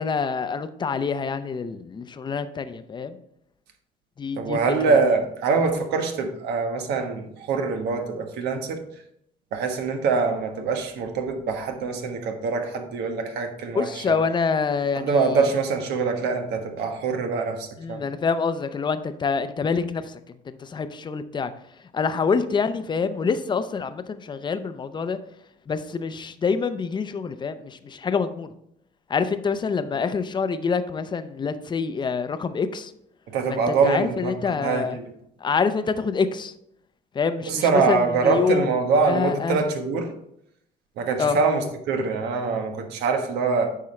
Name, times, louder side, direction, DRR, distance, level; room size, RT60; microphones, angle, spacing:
voice 1, 0.0-3.2 4.2-4.6 4.9-5.0 13.7-15.5 17.8-20.2 20.5-21.5 21.9-25.2 25.7-28.5 29.1-32.9 33.5-35.0 35.4-36.5 37.1-38.7 39.1-39.6 41.2-41.4, left 5 dB, 25° left, 0.6 m, -26 dB
voice 2, 4.4-8.8 9.5-14.2 14.9-18.1 33.3-35.1 37.5-40.1 41.0-43.8, right 4 dB, 80° right, 1.3 m, -24 dB
8.7 x 5.6 x 3.2 m
cardioid pair, 110°, 17 cm